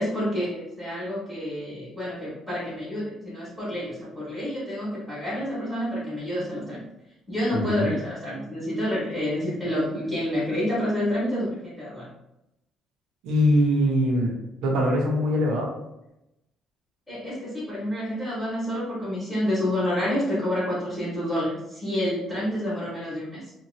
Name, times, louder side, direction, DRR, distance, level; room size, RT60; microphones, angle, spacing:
voice 1, 0.0-6.8 7.3-12.1 17.1-23.5, left 1 dB, ahead, -11 dB, 1.2 m, -28 dB
voice 2, 7.5-7.9 13.2-14.3 14.6-15.7, equal, 90° right, -1 dB, 0.9 m, -22 dB
2.8 x 2.7 x 2.6 m, 0.89 s
cardioid pair, 135°, 0 cm